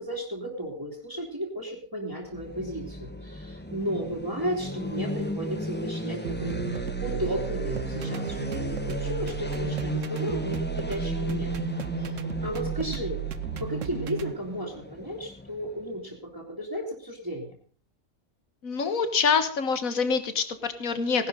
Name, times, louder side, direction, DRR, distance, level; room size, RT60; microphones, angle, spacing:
voice 1, 0.0-11.6 12.0-13.2 13.6-17.5, equal, 15° right, -4 dB, 3.0 m, -34 dB
sound 1, 2.2-16.1, left 1 dB, 10° left, 1.2 m, -35 dB
sound 2, 6.2-14.3, right 8 dB, 65° right, 1.2 m, -34 dB
voice 2, 18.6-21.3, left 5 dB, 80° left, 10 dB, 2.0 m, -26 dB
18.5 x 11.5 x 3.9 m, 0.42 s
omnidirectional pair, 1.5 m